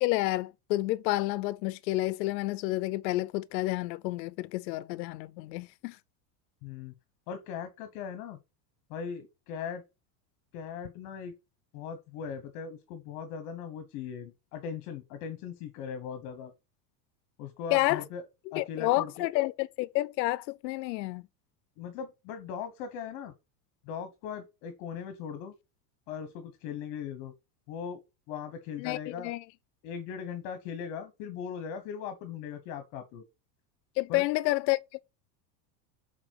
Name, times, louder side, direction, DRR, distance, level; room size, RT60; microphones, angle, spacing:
voice 1, 0.0-6.0 17.7-18.0 18.6-21.2 28.8-29.0 29.2-29.4 34.0-35.0, left 18 dB, 85° left, 0.6 m, -29 dB
voice 2, 6.6-6.9 7.3-8.4 8.9-9.8 10.5-11.3 11.7-16.5 17.4-18.2 18.5-19.3 21.8-23.3 23.9-25.5 26.1-27.3 27.7-28.0 28.3-29.3 29.8-33.2 34.1-34.2, left 7 dB, 45° left, 1.2 m, -39 dB
7.0 x 4.4 x 4.7 m
supercardioid pair, 170°, 49 cm